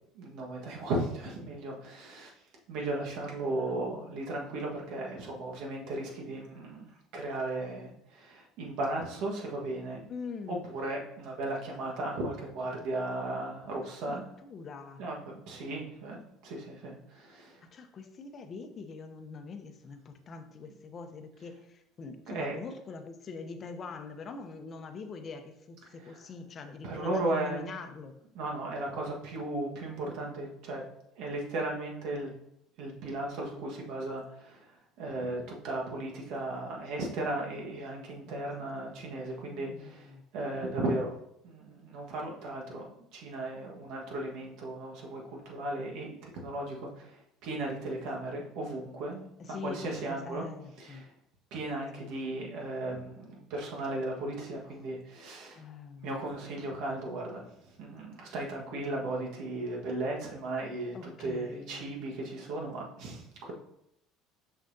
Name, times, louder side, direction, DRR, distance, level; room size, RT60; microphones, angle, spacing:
voice 1, 0.1-2.3 2.7-6.9 7.1-10.0 10.5-14.3 15.0-17.6 22.3-22.6 26.0-26.2 26.8-27.7 28.3-30.8 31.1-32.3 32.8-41.1 41.4-49.2 49.5-50.5 50.8-51.1 51.5-55.6 56.0-63.5, right 2 dB, 70° right, -1 dB, 1.4 m, -36 dB
voice 2, 3.4-4.2 10.1-10.6 13.8-14.1 14.4-15.0 17.6-28.1 38.3-38.4 39.5-40.2 49.4-51.0 52.0-52.2 55.6-56.2 60.9-61.8, left 4 dB, 40° left, 7 dB, 0.7 m, -44 dB
6.3 x 5.5 x 2.7 m, 0.77 s
supercardioid pair, 105°, 0 cm